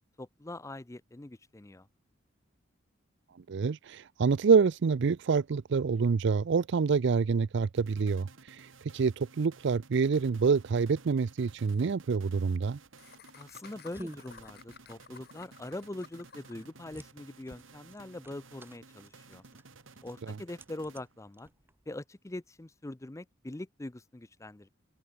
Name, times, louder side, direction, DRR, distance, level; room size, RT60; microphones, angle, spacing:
voice 1, 0.2-1.9 13.4-19.4 20.0-21.5 21.9-24.7, left 1 dB, 15° left, 0.6 m, -43 dB
voice 2, 3.5-8.3 8.9-12.8, right 5 dB, 65° right, 0.4 m, -26 dB
sound 1, 7.8-21.4, right 4 dB, 85° right, 2.0 m, -55 dB
Laughter, 10.9-11.0 11.3-11.4 11.6-11.8 13.0-16.7, left 7 dB, 55° left, 1.5 m, -54 dB
sound 2, 12.7-22.0, right 1 dB, 10° right, 0.9 m, -52 dB
open air
head